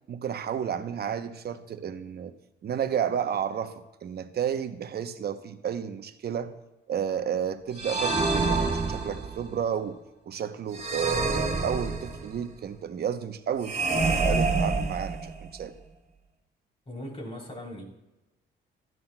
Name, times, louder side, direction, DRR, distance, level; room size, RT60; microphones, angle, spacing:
voice 1, 0.1-2.3 2.6-6.5 6.9-10.0 10.2-15.7, right 8 dB, 55° right, 10 dB, 0.9 m, -32 dB
sound 1, 7.8-9.5 10.7-12.4 13.6-15.5, right 3 dB, 35° right, 2.4 m, -27 dB
voice 2, 16.8-17.8, left 1 dB, 30° left, -1 dB, 3.4 m, -39 dB
15.5 x 12.5 x 2.3 m, 1.0 s
cardioid pair, 90°, 20 cm